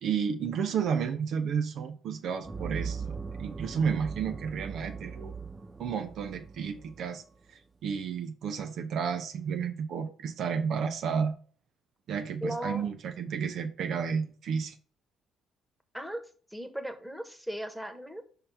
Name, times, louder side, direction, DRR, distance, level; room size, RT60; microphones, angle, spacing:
voice 1, 0.0-5.3 5.8-7.2 7.5-11.3 12.1-14.8, right 6 dB, 60° right, 0.6 m, -32 dB
sound 1, 2.4-7.2, right 5 dB, 25° right, 0.4 m, -39 dB
voice 2, 12.4-12.9 15.9-18.2, equal, 5° right, 1.3 m, -37 dB
5.4 x 3.8 x 5.6 m
hypercardioid pair, 50°, 0 cm